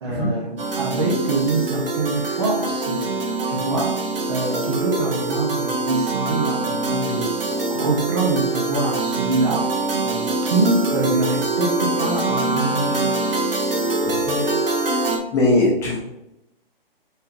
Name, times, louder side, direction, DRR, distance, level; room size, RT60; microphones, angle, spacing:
voice 1, 0.0-4.0 4.2-9.7 10.0-13.1, right 3 dB, 30° right, -1 dB, 0.5 m, -25 dB
sound 1, 0.6-15.2, right 2 dB, 70° right, 0.8 m, -24 dB
voice 2, 14.0-14.4 15.3-16.0, left 2 dB, 10° left, -6 dB, 0.7 m, -20 dB
4.3 x 3.4 x 2.4 m, 0.88 s
figure-of-eight pair, 135°, 29 cm